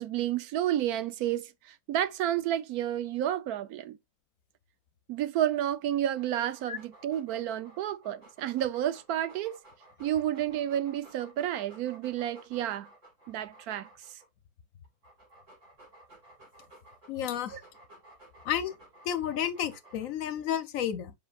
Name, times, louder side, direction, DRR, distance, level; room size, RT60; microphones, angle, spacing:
voice 1, 0.0-4.0 5.1-9.6 10.0-12.9 13.3-13.9 17.5-17.6, right 11 dB, 80° right, 1.1 m, -31 dB
Dog, 6.1-14.3 14.8-20.2, right 1 dB, 50° right, 4.9 m, -56 dB
voice 2, 17.1-17.6 18.5-18.7 19.1-21.1, left 9 dB, 65° left, 1.0 m, -31 dB
7.7 x 5.7 x 2.3 m
omnidirectional pair, 1.6 m